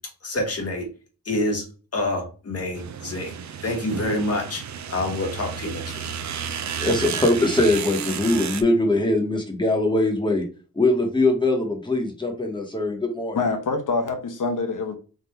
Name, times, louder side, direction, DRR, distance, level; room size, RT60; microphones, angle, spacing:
voice 1, 0.2-0.9 1.2-1.6 1.9-3.3 3.6-5.9, left 1 dB, 45° left, 1.4 m, -27 dB
sound 1, 2.7-8.6, right 7 dB, 55° right, 0.5 m, -32 dB
voice 2, 6.8-10.4 10.7-13.4, left 2 dB, 15° left, 1.1 m, -22 dB
voice 3, 13.3-15.0, left 3 dB, 65° left, 0.8 m, -25 dB
3.7 x 2.5 x 4.3 m
wide cardioid pair, 135°, 33 cm